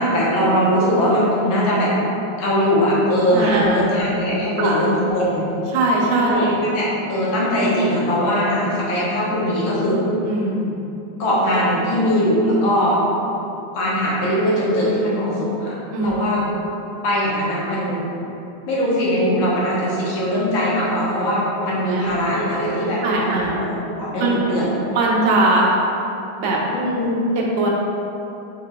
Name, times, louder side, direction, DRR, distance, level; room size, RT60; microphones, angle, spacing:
voice 1, 0.0-1.9 2.4-5.5 6.3-10.0 11.2-13.0 13.7-16.4 17.0-18.0 18.7-24.7 26.7-27.2, equal, 80° left, -6 dB, 1.7 m, -20 dB
voice 2, 3.3-3.9 4.6-4.7 5.7-6.5 10.3-10.7 15.9-16.1 16.4-16.5 21.9-22.2 23.0-23.6 24.2-24.4 24.9-25.7 26.4-26.6 27.4-27.7, right 2 dB, 85° right, -3 dB, 1.5 m, -20 dB
5.5 x 3.6 x 2.2 m, 2.8 s
omnidirectional pair, 2.2 m